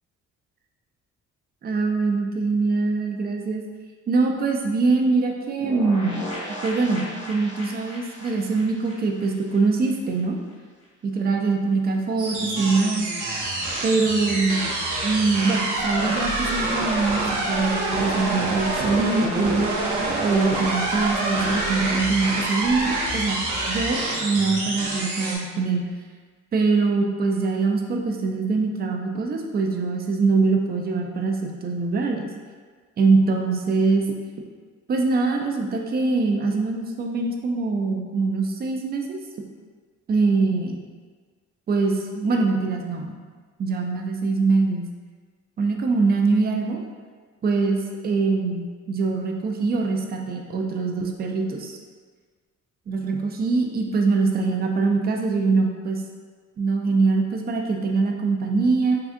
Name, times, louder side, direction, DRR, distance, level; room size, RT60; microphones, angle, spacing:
voice 1, 1.6-3.6 4.1-6.2 6.6-10.4 11.0-13.1 13.8-14.6 15.0-19.7 20.2-25.9 26.5-32.3 33.0-34.1 34.9-39.2 40.1-40.8 41.7-43.2 43.6-44.9 45.6-46.8 47.4-51.8 52.9-56.0 56.6-59.0, right 3 dB, 30° right, 2 dB, 0.4 m, -23 dB
sound 1, 5.6-10.2 10.5-10.6 10.8-10.9, equal, 40° left, 1.4 m, -37 dB
sound 2, 12.2-25.4, right 2 dB, 85° right, 0.7 m, -26 dB
3.7 x 2.3 x 2.5 m, 1.5 s
cardioid pair, 90°, 30 cm